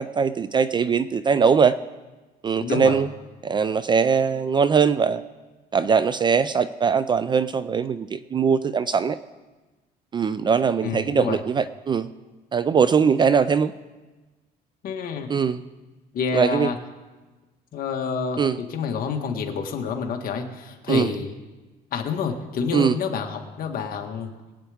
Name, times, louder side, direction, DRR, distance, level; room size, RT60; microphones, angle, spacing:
voice 1, 0.0-1.7 2.4-3.1 3.4-5.2 5.7-9.2 10.1-12.1 12.5-13.7 15.3-15.6 16.3-16.7 18.4-18.6 20.9-21.1 22.7-22.9, right 6 dB, 25° right, 14 dB, 0.3 m, -21 dB
voice 2, 2.6-3.0 10.8-11.4 14.8-15.3 16.1-16.8 17.7-21.3 21.9-24.3, left 5 dB, 55° left, 3 dB, 1.6 m, -28 dB
22.5 x 8.9 x 3.5 m, 1.2 s
cardioid pair, 130°, 18 cm